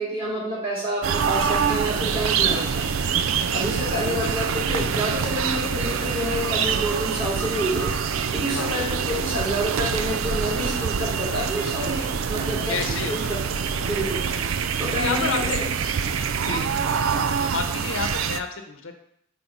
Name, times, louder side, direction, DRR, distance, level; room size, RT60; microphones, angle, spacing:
voice 1, 0.0-2.9 3.5-7.9 8.3-13.2 13.8-14.2 14.8-15.7 16.4-16.8, equal, 25° right, -6 dB, 2.4 m, -29 dB
sound 1, 1.0-18.4, right 6 dB, 75° right, 0.4 m, -25 dB
voice 2, 2.5-2.8 4.0-4.3 8.5-8.8 12.7-13.4 13.7-14.5 14.9-15.6 16.4-16.6 17.3-18.9, left 4 dB, 75° left, 5 dB, 0.8 m, -31 dB
6.0 x 4.3 x 5.3 m, 0.72 s
head